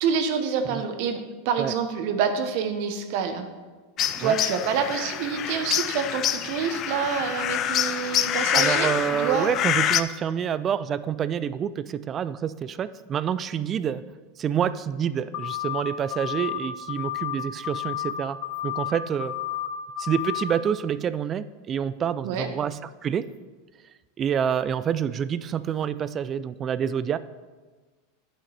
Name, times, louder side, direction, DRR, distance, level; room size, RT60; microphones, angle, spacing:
voice 1, 0.0-3.5 4.2-9.5 22.2-22.5, right 6 dB, 60° right, 8 dB, 0.9 m, -27 dB
sound 1, 4.0-10.0, left 10 dB, 40° left, 0.4 m, -26 dB
voice 2, 8.5-14.1 14.4-19.4 20.0-23.3 24.2-27.2, right 8 dB, 35° right, 15 dB, 0.4 m, -27 dB
sound 2, 15.3-15.8 16.1-16.6 16.9-17.4 17.6-18.1 18.4-18.9 19.2-19.7 20.0-20.4, left 14 dB, 55° left, 0.8 m, -31 dB
11.0 x 6.0 x 3.3 m, 1.3 s
hypercardioid pair, 95°, 0 cm